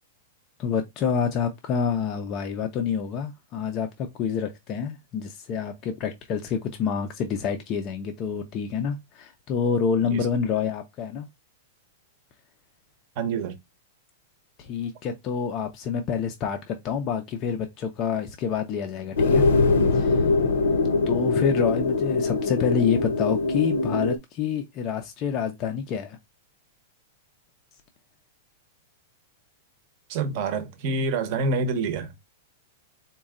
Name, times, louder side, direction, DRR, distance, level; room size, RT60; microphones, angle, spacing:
voice 1, 0.6-11.3 14.6-19.5 19.9-20.5 21.1-26.2, left 7 dB, 25° left, 0.5 m, -28 dB
voice 2, 13.2-13.6 30.1-32.1, right 3 dB, 35° right, 0.8 m, -27 dB
sound 1, 19.2-24.2, left 3 dB, 80° left, 0.8 m, -22 dB
4.1 x 2.2 x 3.6 m
supercardioid pair, 175°, 0 cm